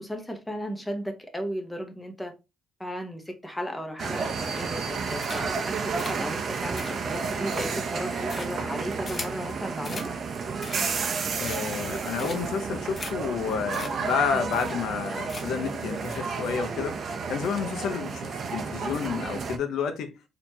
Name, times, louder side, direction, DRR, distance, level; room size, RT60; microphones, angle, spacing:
voice 1, 0.0-2.3 2.8-10.1, equal, 10° left, 1.0 m, -35 dB
sound 1, 4.0-19.6, right 5 dB, 55° right, 0.7 m, -31 dB
sound 2, 4.4-4.9 5.2-5.7 6.0-9.4 9.8-10.1 10.5-11.0 11.4-11.8 12.2-12.6 13.0-13.1 13.4-13.5 13.7-13.9 14.2-14.3 14.5-15.0 15.3-15.7 16.0-16.2, left 3 dB, 35° left, 0.7 m, -40 dB
voice 2, 11.4-17.0 17.3-20.1, left 6 dB, 80° left, 0.7 m, -30 dB
4.2 x 2.9 x 2.8 m
cardioid pair, 90°, 0 cm